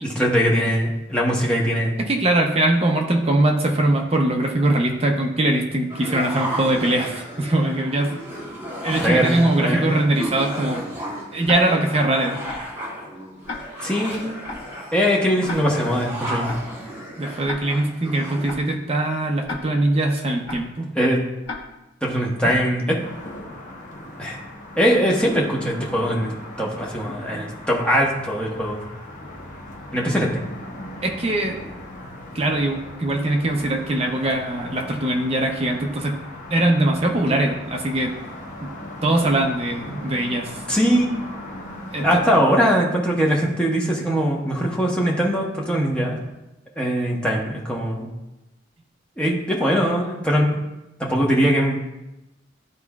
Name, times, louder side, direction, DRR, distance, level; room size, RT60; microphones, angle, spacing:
voice 1, 0.0-1.9 8.9-9.9 13.8-14.3 14.9-16.5 20.9-21.2 22.0-23.0 24.2-24.4 24.8-26.3 26.6-28.8 29.9-30.5 40.7-41.1 42.0-46.2 46.8-48.1 49.2-50.6 51.0-51.8, equal, 5° left, -4 dB, 1.0 m, -21 dB
voice 2, 2.0-8.2 8.8-10.8 11.3-12.4 17.2-20.9 27.3-27.5 31.0-31.6 32.3-36.1 36.5-38.1 38.6-38.7 39.0-40.5 41.9-42.2, right 1 dB, 30° right, 1 dB, 0.7 m, -21 dB
sound 1, 5.9-18.7, right 1 dB, 15° right, 1.4 m, -33 dB
Tick-tock, 11.5-11.6 12.5-12.6 13.5-13.6 14.5-14.6 15.5-15.6 16.5-16.6 17.5-17.6 18.5-18.6 19.5-19.6 20.5-20.6 21.5-21.6 22.5-22.6, left 3 dB, 65° left, 1.1 m, -32 dB
sound 2, 23.0-42.5, left 1 dB, 40° left, 1.0 m, -38 dB
12.0 x 4.2 x 2.4 m, 0.97 s
head